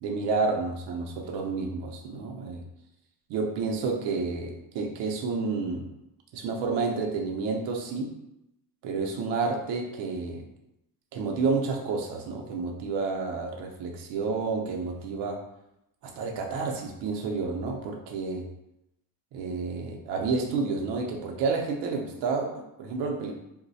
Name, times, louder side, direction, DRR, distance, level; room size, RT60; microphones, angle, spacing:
voice 1, 0.0-2.6 3.3-5.9 6.3-8.1 8.8-10.4 11.1-15.4 16.0-18.4 19.3-23.4, right 4 dB, 90° right, 1 dB, 0.6 m, -30 dB
3.1 x 2.2 x 4.0 m, 0.87 s
cardioid pair, 155°, 40 cm